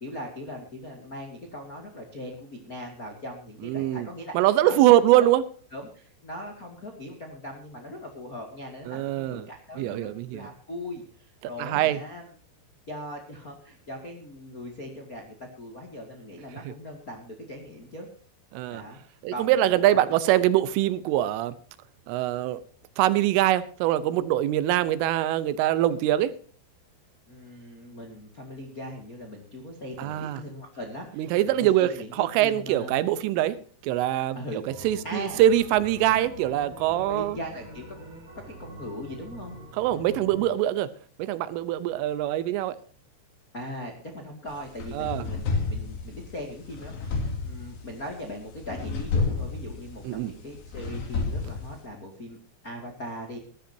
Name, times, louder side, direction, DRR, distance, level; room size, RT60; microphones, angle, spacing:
voice 1, 0.0-4.8 5.2-5.3 5.7-12.2 12.9-18.1 18.7-19.0 19.3-20.2 27.3-32.9 34.3-34.6 35.0-35.4 36.9-37.8 38.5-39.6 40.1-40.5 43.5-52.4 52.6-53.4, left 1 dB, 40° left, 2 dB, 1.2 m, -40 dB
voice 2, 3.6-4.1 4.4-5.4 8.9-9.4 9.8-10.5 11.6-12.0 18.5-18.8 19.2-21.6 22.1-22.6 23.0-26.3 30.0-30.4 31.2-31.9 32.2-33.6 33.8-34.4 34.8-37.4 39.8-40.9 41.2-42.8 44.9-45.2 50.1-50.3, right 13 dB, 80° right, 14 dB, 3.5 m, -23 dB
sound 1, 34.7-40.5, right 1 dB, 35° right, 4.3 m, -45 dB
sound 2, 44.5-51.8, left 4 dB, 60° left, 4.9 m, -31 dB
20.0 x 13.5 x 2.9 m, 0.41 s
omnidirectional pair, 5.7 m